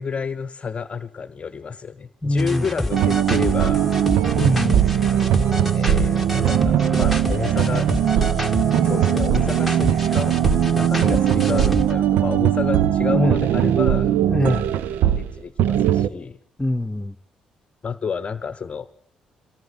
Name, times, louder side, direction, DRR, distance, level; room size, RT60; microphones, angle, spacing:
voice 1, 0.0-3.9 5.7-8.2 8.8-14.1 15.1-16.4 17.8-18.9, left 5 dB, 40° left, 0.9 m, -30 dB
voice 2, 2.2-2.7 4.4-4.9 13.1-13.3 14.3-14.7 16.6-17.1, left 1 dB, 15° left, 1.2 m, -23 dB
sound 1, 2.4-11.9, left 1 dB, 5° right, 2.3 m, -28 dB
sound 2, 2.9-15.3 15.6-16.1, right 10 dB, 65° right, 0.9 m, -20 dB
24.0 x 18.5 x 7.9 m
figure-of-eight pair, 45°, 3 cm